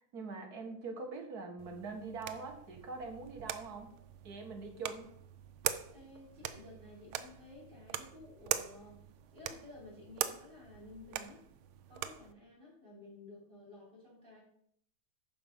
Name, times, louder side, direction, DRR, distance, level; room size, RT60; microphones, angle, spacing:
voice 1, 0.0-3.9 4.2-5.1, right 4 dB, 50° right, 4 dB, 1.7 m, -43 dB
sound 1, 1.6-12.3, right 11 dB, 90° right, 1.5 m, -42 dB
voice 2, 5.9-11.4 11.9-14.4, left 2 dB, 25° right, -6 dB, 4.5 m, -54 dB
9.3 x 6.0 x 5.4 m, 0.68 s
omnidirectional pair, 2.2 m